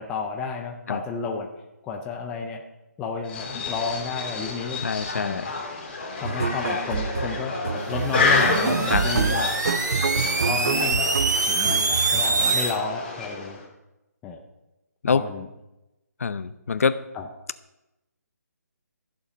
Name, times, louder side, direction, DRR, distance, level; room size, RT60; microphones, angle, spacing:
voice 1, 0.0-1.5 1.8-2.6 3.0-4.8 5.2-5.5 6.2-9.5 10.4-11.1 11.5-13.6 14.2-14.4 15.0-15.5 17.2-17.3, left 5 dB, 5° left, 1 dB, 0.4 m, -31 dB
sound 1, 3.3-13.7, left 4 dB, 35° left, 2.8 m, -29 dB
voice 2, 4.8-5.5 8.9-9.0 15.0-15.2 16.2-17.0, left 5 dB, 55° left, 14 dB, 0.6 m, -24 dB
sound 2, 6.2-12.6, right 5 dB, 60° right, 0.5 m, -28 dB
sound 3, 7.9-12.7, right 3 dB, 80° right, 1.4 m, -25 dB
13.5 x 7.1 x 5.1 m, 0.95 s
hypercardioid pair, 170°, 9 cm